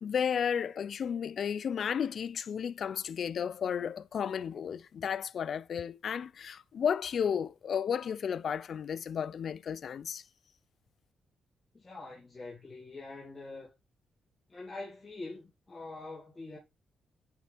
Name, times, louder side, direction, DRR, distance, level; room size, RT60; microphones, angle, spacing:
voice 1, 0.0-10.2, left 7 dB, 65° left, 0.4 m, -33 dB
voice 2, 11.7-13.7 14.5-16.6, left 3 dB, 25° left, 2.7 m, -44 dB
9.2 x 4.3 x 3.4 m
cardioid pair, 85°, 0 cm